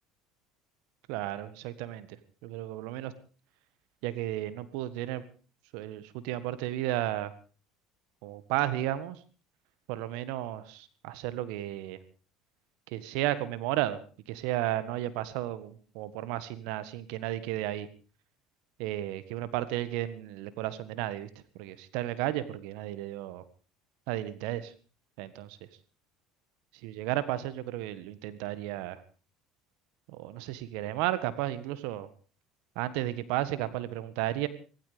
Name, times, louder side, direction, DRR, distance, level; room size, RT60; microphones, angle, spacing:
voice 1, 1.1-2.2 2.4-3.1 4.0-5.2 5.7-7.3 8.2-9.2 9.9-12.0 12.9-14.0 14.3-17.9 18.8-21.3 21.5-23.4 24.1-24.7 25.2-25.6 26.8-29.0 30.1-32.1 32.7-34.5, right 14 dB, 75° right, 15 dB, 1.6 m, -33 dB
16.5 x 16.0 x 5.1 m, 0.37 s
supercardioid pair, 90°, 0 cm